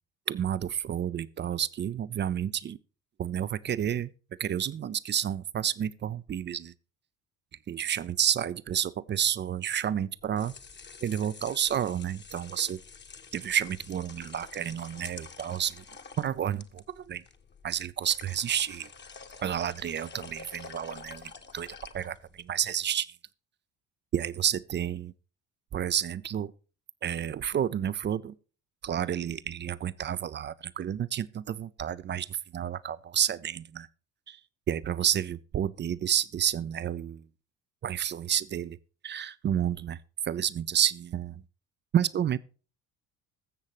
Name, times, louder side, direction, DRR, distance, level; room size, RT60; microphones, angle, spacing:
voice 1, 0.3-2.8 3.2-4.1 4.4-6.7 7.7-10.5 11.0-12.8 13.3-15.8 16.2-17.2 17.6-18.9 19.4-23.1 24.1-25.1 25.7-26.5 27.0-28.3 28.8-32.3 32.5-33.9 34.3-34.4 34.7-37.2 37.8-38.8 39.0-40.0 40.3-41.3 41.9-42.4, right 9 dB, 25° right, 0.4 m, -30 dB
sound 1, 10.2-22.5, left 5 dB, 25° left, 1.0 m, -48 dB
20.5 x 7.3 x 3.0 m
figure-of-eight pair, 55°, 46 cm